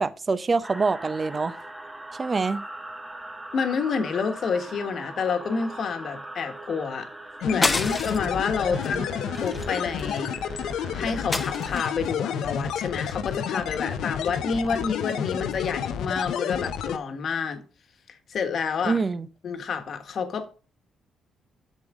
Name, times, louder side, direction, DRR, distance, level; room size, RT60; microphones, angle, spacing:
voice 1, 0.0-1.5 2.2-2.6 8.7-9.1 18.8-19.3, right 4 dB, 35° right, 0.7 m, -25 dB
sound 1, 0.6-11.8, right 2 dB, 15° right, 1.1 m, -40 dB
voice 2, 3.5-7.1 7.4-17.6 18.1-19.0 19.4-20.5, left 5 dB, 60° left, 1.4 m, -29 dB
sound 2, 7.4-17.0, left 8 dB, 80° left, 0.7 m, -30 dB
sound 3, 7.6-8.4 8.8-9.0 9.3-10.3 11.3-12.1, left 3 dB, 25° left, 0.8 m, -28 dB
8.3 x 6.5 x 3.6 m
cardioid pair, 75°, 0 cm